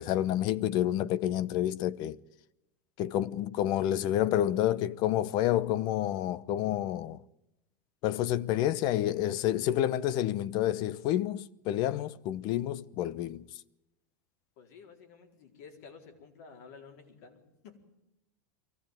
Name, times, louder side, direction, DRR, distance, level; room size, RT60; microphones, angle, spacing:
voice 1, 0.0-2.2 3.0-7.2 8.0-13.4, left 12 dB, 50° left, 0.8 m, -29 dB
voice 2, 14.6-17.8, left 5 dB, 70° left, 4.3 m, -52 dB
22.5 x 16.0 x 9.1 m
supercardioid pair, 115°, 9 cm